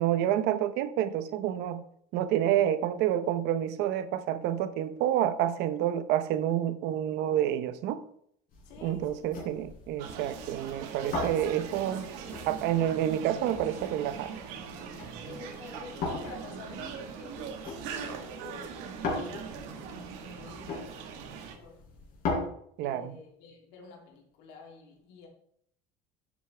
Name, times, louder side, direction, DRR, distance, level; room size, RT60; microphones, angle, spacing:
voice 1, 0.0-1.8 2.1-8.0 8.8-12.1 12.5-14.3 22.8-23.2, right 11 dB, 65° right, 0.8 m, -28 dB
sound 1, 8.5-22.4, left 3 dB, 50° left, 3.9 m, -40 dB
voice 2, 8.6-9.2 15.2-17.5 17.9-19.7 20.2-21.8 22.8-25.3, left 4 dB, 70° left, 3.1 m, -49 dB
sound 2, 10.0-21.6, right 6 dB, 85° right, 1.6 m, -41 dB
10.5 x 8.1 x 3.4 m
cardioid pair, 150°, 18 cm